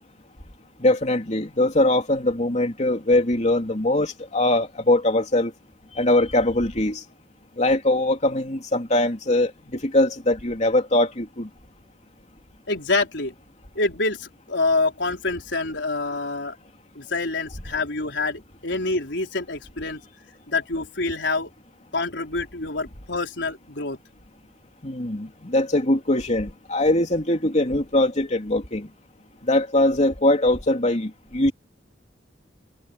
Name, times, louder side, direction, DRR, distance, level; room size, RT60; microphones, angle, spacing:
voice 1, 0.8-5.5 5.9-7.0 7.6-11.5 24.8-28.9 29.4-31.5, left 1 dB, 40° left, 3.1 m, -22 dB
voice 2, 12.7-13.3 13.7-16.6 16.9-20.0 20.5-21.5 21.9-24.0, left 3 dB, 80° left, 4.1 m, -26 dB
head